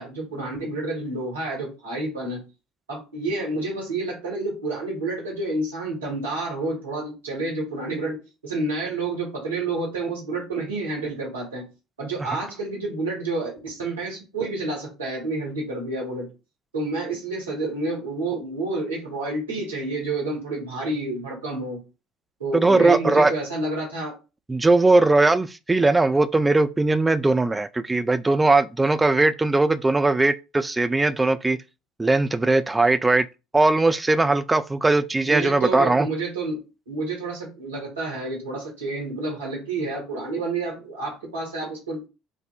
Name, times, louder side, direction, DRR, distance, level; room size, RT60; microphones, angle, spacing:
voice 1, 0.0-2.4 2.9-11.7 12.0-16.3 16.7-21.8 22.4-24.2 35.2-36.6 36.9-42.0, right 2 dB, 85° right, 1.5 m, -29 dB
voice 2, 22.5-23.3 24.5-31.6 32.0-33.3 33.5-36.1, right 2 dB, 15° right, 0.3 m, -19 dB
4.2 x 2.1 x 2.4 m
figure-of-eight pair, 60°, 0 cm